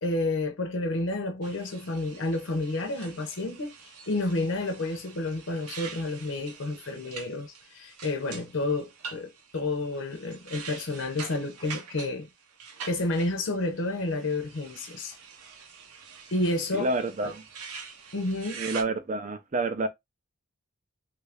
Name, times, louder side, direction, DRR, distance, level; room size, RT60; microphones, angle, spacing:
voice 1, 0.0-12.3 12.8-15.2 16.3-16.9 17.2-17.3 18.1-18.6, left 2 dB, 60° left, 0.6 m, -30 dB
sound 1, 1.4-18.8, right 6 dB, 80° right, 0.7 m, -45 dB
voice 2, 16.7-17.4 18.6-19.9, right 2 dB, 35° right, 0.5 m, -29 dB
3.2 x 2.4 x 3.3 m
head